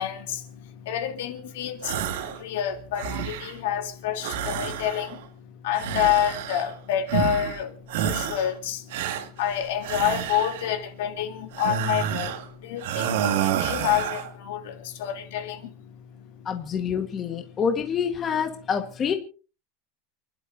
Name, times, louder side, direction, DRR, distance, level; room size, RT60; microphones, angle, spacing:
voice 1, 0.0-2.0 2.2-5.3 5.6-8.9 9.4-15.7, left 10 dB, 80° left, 3.1 m, -28 dB
sound 1, 1.8-2.4 2.7-3.6 4.2-5.3 5.7-6.8 7.1-7.6 7.9-8.5 8.9-10.8 11.5-12.5 12.8-14.3, right 9 dB, 85° right, 2.0 m, -29 dB
voice 2, 16.4-19.1, left 7 dB, 20° left, 1.4 m, -27 dB
29.5 x 11.5 x 2.7 m
supercardioid pair, 170°, 0 cm